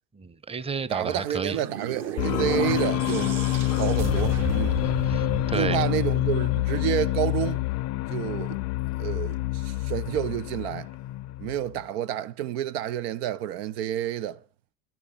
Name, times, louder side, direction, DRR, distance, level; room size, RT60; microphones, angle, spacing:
voice 1, 0.1-1.6 4.8-5.8, right 5 dB, 20° right, 1.0 m, -32 dB
voice 2, 0.9-3.4 3.8-4.8 5.5-7.6 8.1-8.6 9.0-10.9 11.4-14.4, right 11 dB, 75° right, 0.7 m, -29 dB
sound 1, 1.1-6.5, right 7 dB, 55° right, 2.9 m, -34 dB
sound 2, 2.2-11.8, left 17 dB, 55° left, 0.5 m, -27 dB
10.5 x 9.7 x 5.2 m
hypercardioid pair, 80°, 31 cm